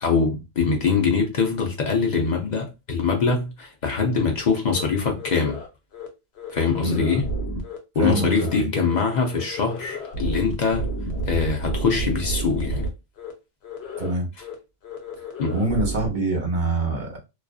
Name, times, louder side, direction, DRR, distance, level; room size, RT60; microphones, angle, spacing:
voice 1, 0.0-5.6 6.5-7.3 8.0-10.9 11.3-12.9 15.4-15.5, left 5 dB, 50° left, 0.6 m, -23 dB
sound 1, 4.7-4.8 5.2-5.7 5.9-6.1 6.4-7.8 8.1-8.6 8.9-9.0 9.3-12.9 13.2-13.3 13.6-14.1 14.4-14.5 14.8-16.1, right 1 dB, 85° left, 0.9 m, -31 dB
voice 2, 8.0-8.7 14.0-14.3 15.5-17.2, right 2 dB, 50° right, 1.0 m, -25 dB
2.4 x 2.3 x 2.3 m
omnidirectional pair, 1.1 m